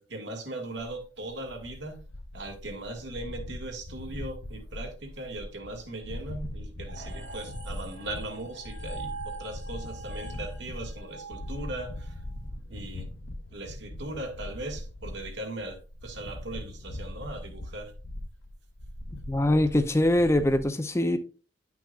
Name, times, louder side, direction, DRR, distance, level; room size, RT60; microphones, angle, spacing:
voice 1, 0.0-2.0 2.3-9.1 9.4-12.1 12.7-13.1 13.5-17.9, right 2 dB, 65° right, 1.6 m, -39 dB
sound 1, 0.9-20.6, left 1 dB, 75° left, 1.0 m, -40 dB
sound 2, 6.9-12.3, right 4 dB, 85° right, 1.7 m, -44 dB
voice 2, 19.3-21.2, left 1 dB, 15° left, 0.5 m, -23 dB
9.9 x 6.0 x 2.4 m
head